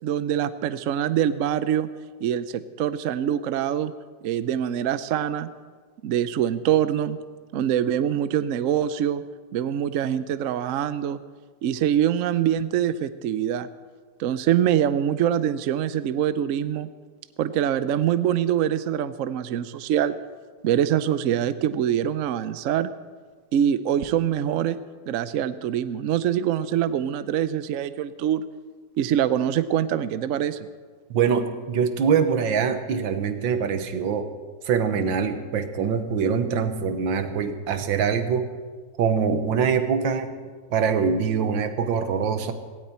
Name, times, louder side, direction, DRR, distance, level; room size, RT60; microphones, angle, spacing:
voice 1, 0.0-1.9 2.2-3.9 4.2-5.5 6.0-7.2 7.5-9.2 9.5-11.2 11.6-13.7 14.2-16.9 17.4-20.2 20.6-22.9 23.5-24.8 25.1-28.4 29.0-30.6, right 10 dB, 65° right, 13 dB, 0.8 m, -24 dB
voice 2, 31.1-34.3 34.6-38.5 39.0-40.3 40.7-42.5, right 6 dB, 85° right, 9 dB, 1.7 m, -24 dB
17.5 x 17.0 x 4.3 m, 1.5 s
omnidirectional pair, 2.0 m